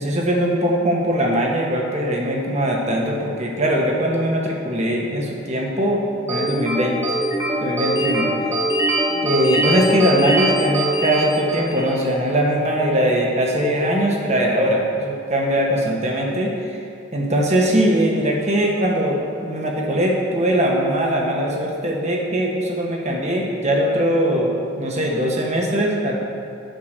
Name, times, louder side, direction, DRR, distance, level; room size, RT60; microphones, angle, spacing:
voice 1, 0.0-7.0 7.6-8.3 9.2-16.8 17.1-24.5 24.8-26.2, equal, 35° right, -1 dB, 1.4 m, -21 dB
sound 1, 6.3-12.0, right 1 dB, 15° right, 1.4 m, -22 dB
9.3 x 5.8 x 6.8 m, 2.5 s
head